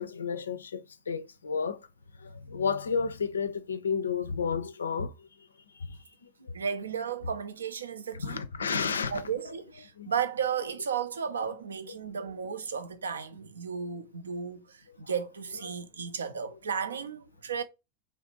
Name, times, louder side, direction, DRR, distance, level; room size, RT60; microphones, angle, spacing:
voice 1, 0.0-1.8 2.2-5.3 5.7-6.0 6.4-6.5 8.2-9.2 10.0-10.1 15.7-15.8, left 6 dB, 70° left, 0.3 m, -32 dB
voice 2, 6.5-8.4 9.1-17.6, right 7 dB, 70° right, 0.4 m, -34 dB
3.1 x 2.4 x 2.8 m
figure-of-eight pair, 90°, 0 cm